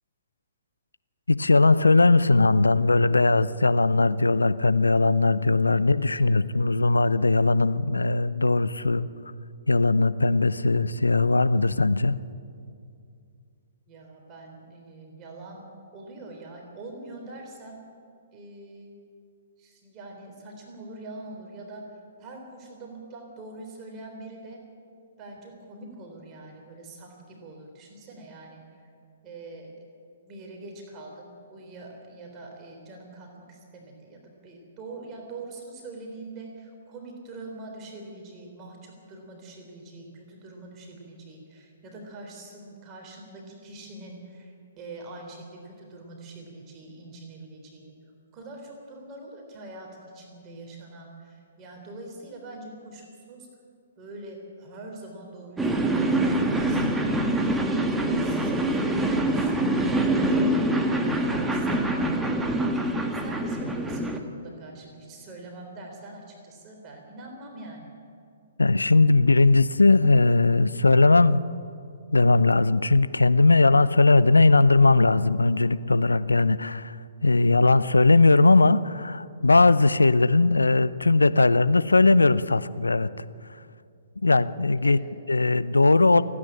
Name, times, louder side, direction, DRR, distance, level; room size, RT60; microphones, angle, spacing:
voice 1, 1.3-9.1 9.7-12.2 68.6-71.4 72.1-77.0 77.2-83.1 84.2-85.0 85.3-86.2, left 3 dB, 85° left, 15 dB, 0.7 m, -19 dB
voice 2, 5.8-6.4 13.9-15.7 15.9-17.8 18.3-18.9 19.6-21.9 22.2-24.6 25.2-28.9 29.2-29.7 30.2-47.9 48.3-53.5 54.0-58.8 59.1-68.0 84.8-85.1, right 2 dB, 25° right, 1 dB, 3.8 m, -43 dB
sound 1, 55.6-64.2, right 1 dB, 5° right, 1.5 m, -25 dB
28.0 x 9.9 x 10.0 m, 2.4 s
figure-of-eight pair, 125°, 0 cm